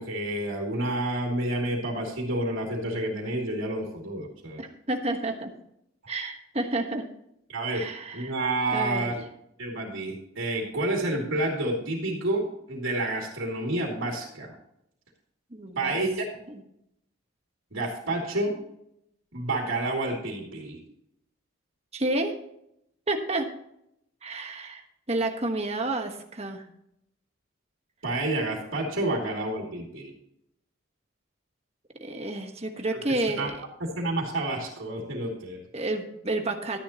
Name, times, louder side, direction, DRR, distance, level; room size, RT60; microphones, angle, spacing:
voice 1, 0.0-4.6 7.5-7.9 8.1-9.1 9.6-14.6 15.8-16.2 17.7-18.6 19.3-20.8 28.0-30.1 33.4-33.5 34.0-35.6, right 2 dB, 80° right, -2 dB, 2.6 m, -29 dB
voice 2, 4.6-5.5 6.1-7.0 7.7-8.3 8.7-9.1 15.5-16.0 21.9-22.4 23.1-23.5 24.2-24.8 25.1-26.6 32.0-33.6 35.7-36.8, right 2 dB, 30° right, 5 dB, 1.3 m, -30 dB
13.0 x 10.0 x 2.9 m, 0.76 s
head